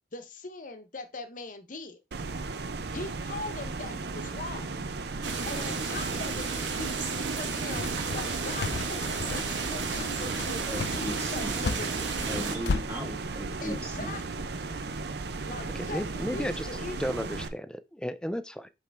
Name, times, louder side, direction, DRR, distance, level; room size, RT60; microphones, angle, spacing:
voice 1, 0.1-2.0 2.9-4.7 5.5-9.0 9.3-10.7 11.0-12.0 13.6-14.5 15.4-17.0, left 3 dB, 45° left, 0.8 m, -41 dB
sound 1, 2.1-17.5, right 3 dB, 60° right, 0.6 m, -36 dB
sound 2, 5.2-12.6, right 4 dB, 75° right, 1.3 m, -33 dB
sound 3, 7.8-12.8, left 4 dB, 65° left, 0.4 m, -34 dB
voice 2, 10.7-11.6 12.3-14.1, equal, 15° right, 1.5 m, -37 dB
voice 3, 15.7-16.7 17.0-18.7, equal, 5° left, 0.3 m, -34 dB
7.3 x 4.3 x 3.4 m
head